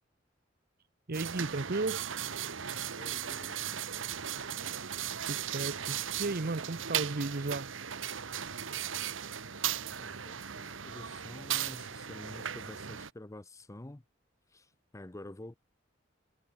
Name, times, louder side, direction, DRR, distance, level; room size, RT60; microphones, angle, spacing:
voice 1, 1.1-2.1 5.2-7.7, right 3 dB, 50° right, 0.9 m, -34 dB
sound 1, 1.1-13.1, right 9 dB, 90° right, 1.3 m, -37 dB
voice 2, 3.0-3.9 4.4-4.8 9.8-14.0 14.5-14.7 14.9-15.5, left 1 dB, 15° left, 0.6 m, -49 dB
head